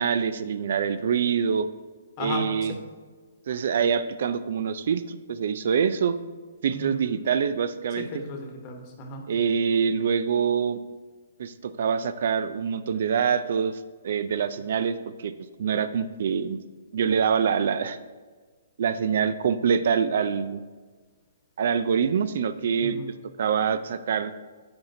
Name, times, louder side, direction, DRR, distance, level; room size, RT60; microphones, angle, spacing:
voice 1, 0.0-1.7 2.2-2.8 3.5-6.2 6.6-8.1 9.3-10.8 11.4-15.3 15.6-16.6 16.9-18.0 18.8-20.6 21.6-23.0 23.4-24.3, right 7 dB, 60° right, 12 dB, 0.3 m, -25 dB
voice 2, 8.0-9.2 22.8-23.1, left 3 dB, 35° left, 3 dB, 1.1 m, -35 dB
8.6 x 4.3 x 2.7 m, 1.4 s
hypercardioid pair, 145°, 0 cm